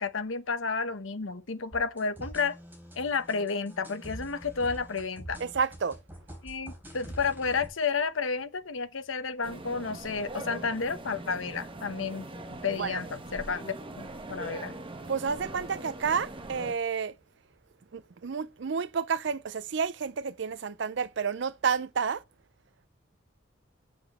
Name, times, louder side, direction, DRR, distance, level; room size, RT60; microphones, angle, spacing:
voice 1, 0.0-2.6 3.0-5.4 6.4-12.3 12.6-14.8, left 5 dB, 85° left, 1.0 m, -31 dB
sound 1, 1.7-7.7, right 1 dB, 10° right, 3.6 m, -45 dB
voice 2, 5.4-6.0 12.8-13.0 15.1-17.1 17.9-22.2, right 6 dB, 60° right, 0.5 m, -30 dB
sound 2, 9.4-16.7, right 1 dB, 25° right, 1.1 m, -41 dB
7.8 x 7.7 x 4.2 m
head